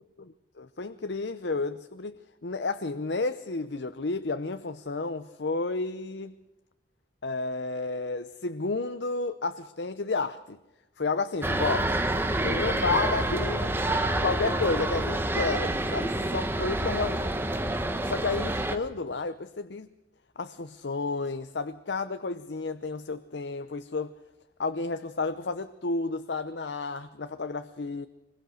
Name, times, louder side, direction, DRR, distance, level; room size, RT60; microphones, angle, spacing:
voice 1, 0.2-6.4 7.2-10.6 11.0-11.9 12.4-13.8 14.1-17.3 18.0-19.9 20.4-24.1 24.6-28.1, left 3 dB, 80° left, 0.8 m, -31 dB
sound 1, 11.4-18.8, right 1 dB, 15° right, 1.3 m, -28 dB
25.5 x 21.5 x 6.4 m
head